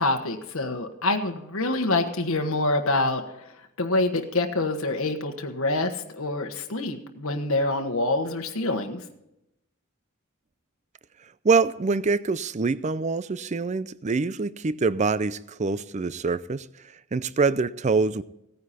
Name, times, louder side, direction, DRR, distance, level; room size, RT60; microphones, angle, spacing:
voice 1, 0.0-3.2 3.8-9.0, left 2 dB, 85° left, 1.4 m, -26 dB
voice 2, 11.4-16.7 17.1-18.2, right 4 dB, 35° right, 0.5 m, -25 dB
16.5 x 9.6 x 4.2 m
head